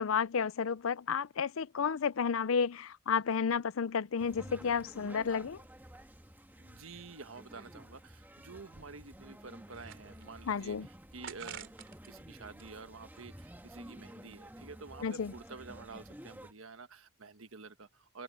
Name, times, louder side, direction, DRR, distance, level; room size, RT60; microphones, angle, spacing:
voice 1, 0.0-5.6 10.5-10.9 15.0-15.3, left 6 dB, 80° left, 0.5 m, -31 dB
sound 1, 4.2-16.5, right 1 dB, 10° right, 1.6 m, -52 dB
voice 2, 6.6-11.7 12.1-18.2, right 4 dB, 80° right, 1.4 m, -49 dB
sound 2, 9.6-10.5 11.2-12.1 12.5-13.7, right 8 dB, 65° right, 3.7 m, -50 dB
open air
head